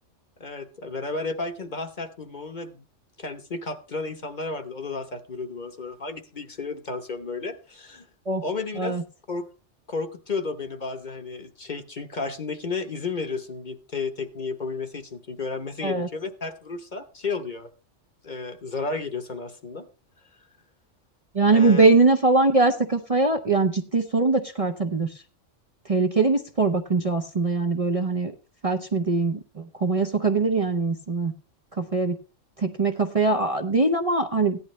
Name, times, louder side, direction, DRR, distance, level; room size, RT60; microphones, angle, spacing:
voice 1, 0.4-2.8 3.2-8.1 8.4-9.0 9.3-9.5 9.9-17.7 18.2-19.9 21.5-21.8, left 4 dB, 40° left, 8 dB, 1.0 m, -32 dB
voice 2, 21.3-25.1 25.8-28.3 28.6-31.3 31.7-32.2 32.6-34.6, right 3 dB, 35° right, 4 dB, 0.7 m, -22 dB
15.5 x 10.5 x 3.2 m, 0.34 s
omnidirectional pair, 1.3 m